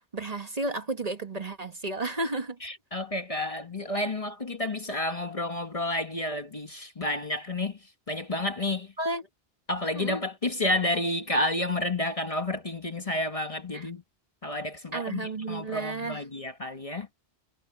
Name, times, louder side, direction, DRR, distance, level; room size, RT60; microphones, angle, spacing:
voice 1, 0.1-2.6 9.0-9.2 9.9-10.2 13.7-13.9 14.9-16.2, right 2 dB, 35° right, 1.3 m, -32 dB
voice 2, 2.6-7.8 8.1-8.9 9.7-14.0 14.4-17.1, left 1 dB, 35° left, 1.2 m, -30 dB
omnidirectional pair, 1.1 m